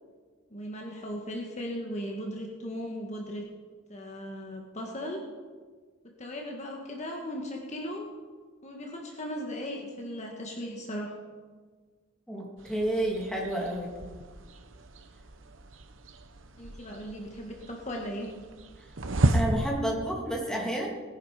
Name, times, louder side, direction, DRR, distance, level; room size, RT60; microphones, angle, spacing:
voice 1, 0.5-3.5 3.9-5.2 6.2-8.1 8.6-11.1 16.6-18.3, equal, 35° left, 0 dB, 1.7 m, -37 dB
voice 2, 12.3-13.9 19.3-20.9, right 1 dB, 5° left, -2 dB, 2.8 m, -30 dB
sound 1, 12.6-19.7, right 1 dB, 75° right, 1.1 m, -33 dB
19.0 x 10.5 x 5.1 m, 1.5 s
head